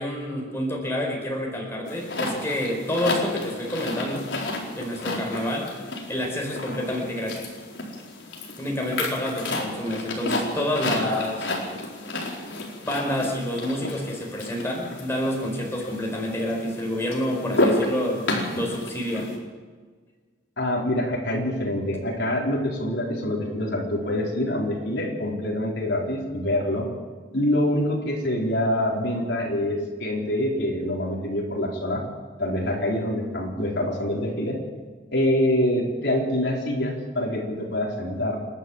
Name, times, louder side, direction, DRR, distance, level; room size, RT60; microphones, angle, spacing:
voice 1, 0.0-4.3 4.7-5.7 6.1-7.5 8.6-11.5 12.8-19.3, left 1 dB, 15° left, 0 dB, 4.8 m, -28 dB
sound 1, 1.9-19.4, left 2 dB, 85° left, 4.6 m, -31 dB
voice 2, 20.6-26.9 27.3-32.0 32.4-34.6 35.1-38.4, left 1 dB, 65° left, -2 dB, 4.6 m, -25 dB
29.0 x 12.0 x 7.4 m, 1.5 s
head